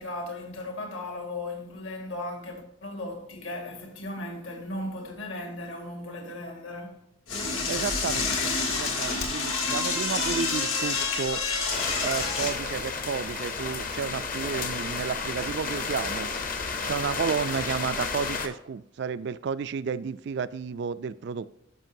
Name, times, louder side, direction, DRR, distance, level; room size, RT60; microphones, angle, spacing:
voice 1, 0.0-7.0, left 1 dB, 65° left, 1.8 m, -36 dB
Door / Toilet flush, 7.3-12.5, left 4 dB, 85° left, 2.2 m, -28 dB
voice 2, 7.7-11.4 12.0-16.3 16.8-21.5, right 6 dB, 55° right, 0.3 m, -32 dB
sound 1, 11.7-18.5, left 4 dB, 40° left, 0.8 m, -32 dB
13.5 x 5.9 x 2.7 m
head